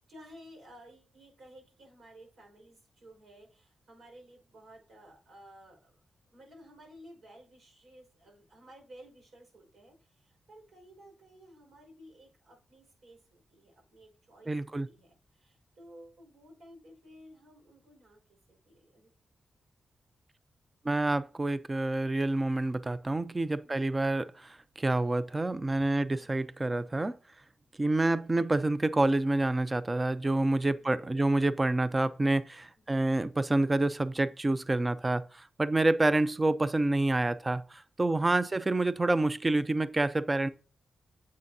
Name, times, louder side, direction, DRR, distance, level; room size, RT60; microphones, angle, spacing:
voice 1, 0.1-6.0 6.3-19.1 30.7-31.5 32.8-33.0, equal, 75° right, 5.0 m, -55 dB
voice 2, 14.5-14.9 20.8-27.1 27.8-40.5, right 2 dB, 25° right, 0.6 m, -28 dB
9.4 x 7.7 x 2.7 m
cardioid pair, 60°, 0 cm